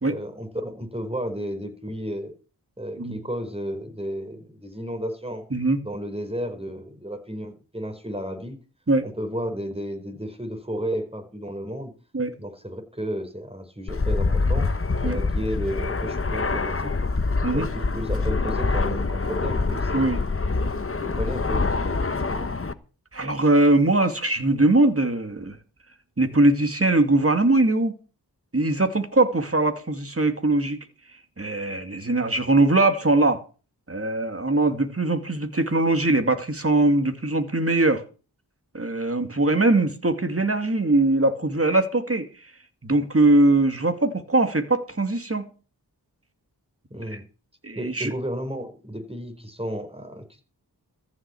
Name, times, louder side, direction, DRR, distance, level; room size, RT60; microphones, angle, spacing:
voice 1, 0.0-2.3 2.8-5.4 5.8-8.6 9.0-11.9 12.4-14.7 15.0-16.9 17.5-20.2 20.7-22.5 46.9-47.3 47.7-50.4, equal, 15° right, 4.6 m, -33 dB
voice 2, 5.5-5.8 8.9-9.0 12.1-12.3 15.0-15.2 17.4-17.7 19.9-20.2 23.1-25.6 26.2-27.9 28.5-30.8 31.4-33.4 33.9-38.0 38.7-42.3 42.8-45.5 47.6-48.1, right 2 dB, 35° right, 2.5 m, -21 dB
Fixed-wing aircraft airplane, 13.9-22.7, left 3 dB, 35° left, 1.1 m, -25 dB
14.5 x 6.3 x 8.5 m
cardioid pair, 45°, 40 cm